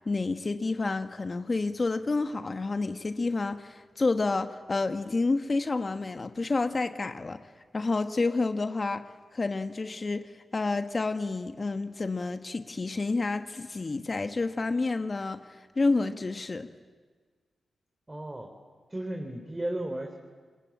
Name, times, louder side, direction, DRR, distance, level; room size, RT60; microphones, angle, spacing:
voice 1, 0.1-7.4 7.7-9.1 9.3-15.4 15.8-16.7, left 3 dB, 45° left, 8 dB, 1.3 m, -29 dB
voice 2, 18.1-18.5 18.9-20.2, right 1 dB, 25° right, 3 dB, 3.4 m, -34 dB
29.5 x 21.5 x 8.6 m, 1.5 s
supercardioid pair, 40°, 0 cm